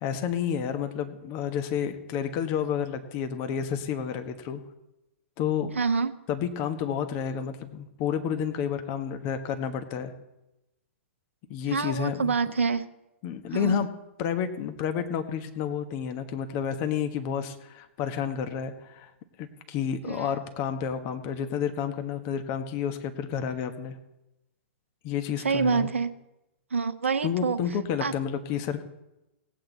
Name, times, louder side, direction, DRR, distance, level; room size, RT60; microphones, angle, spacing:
voice 1, 0.0-4.6 5.4-5.7 6.3-10.1 11.5-12.3 13.2-13.9 14.2-19.1 19.4-24.0 25.0-25.9 27.2-28.8, left 8 dB, 40° left, 7 dB, 1.3 m, -30 dB
voice 2, 5.7-6.1 11.7-12.8 13.5-13.8 20.1-20.3 25.4-26.1 26.7-27.6 28.0-28.1, right 5 dB, 75° right, 9 dB, 0.9 m, -26 dB
18.0 x 8.4 x 4.1 m, 0.93 s
figure-of-eight pair, 110°, 7 cm